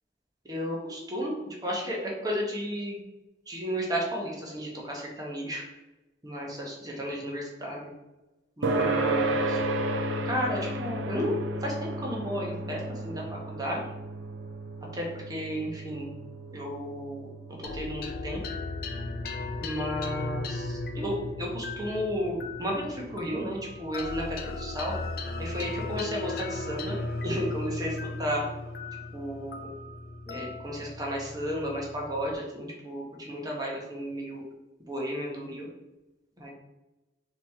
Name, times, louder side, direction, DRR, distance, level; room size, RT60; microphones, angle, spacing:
voice 1, 0.4-3.0 3.5-5.6 6.2-7.9 8.6-9.6 10.2-13.8 14.9-16.1 16.5-17.3 17.7-18.4 19.6-24.9 25.4-26.9 27.2-28.4 29.1-29.7 30.3-34.4 34.8-35.7 36.4-36.5, equal, 20° right, -2 dB, 1.0 m, -33 dB
sound 1, 8.6-23.5, right 2 dB, 90° right, 0.5 m, -34 dB
sound 2, 17.6-32.3, left 2 dB, 50° left, 0.4 m, -36 dB
4.1 x 3.0 x 4.2 m, 1.0 s
head